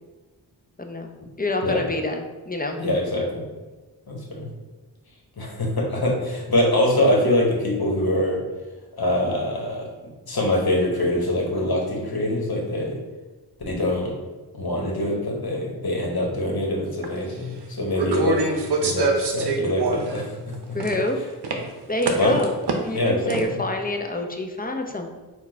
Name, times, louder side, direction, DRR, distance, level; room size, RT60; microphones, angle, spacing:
voice 1, 0.8-1.1 1.4-2.8 20.7-21.2 21.9-22.6 22.8-25.1, left 1 dB, 20° left, 3 dB, 0.5 m, -27 dB
voice 2, 2.8-3.4 4.1-4.5 5.4-8.4 9.0-9.8 10.3-13.0 13.7-14.1 14.5-20.5 22.2-22.4 22.9-23.6, left 1 dB, 60° left, -1 dB, 1.2 m, -24 dB
sound 1, 17.0-17.1 17.9-20.2 20.5-21.1 21.4-21.6 22.0-23.0 23.3-23.4, right 4 dB, 70° right, 0.7 m, -25 dB
4.5 x 2.3 x 4.4 m, 1.2 s
wide cardioid pair, 50°, 42 cm